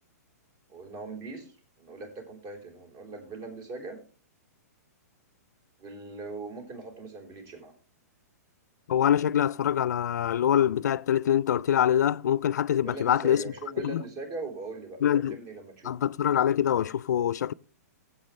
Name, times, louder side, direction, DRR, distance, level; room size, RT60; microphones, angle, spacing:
voice 1, 0.7-4.0 5.8-7.7 12.8-16.0, right 3 dB, 40° right, 3.7 m, -40 dB
voice 2, 8.9-13.4 13.8-14.0 15.0-15.4 15.8-17.5, left 10 dB, 80° left, 0.4 m, -24 dB
16.0 x 7.9 x 3.1 m
hypercardioid pair, 155°, 9 cm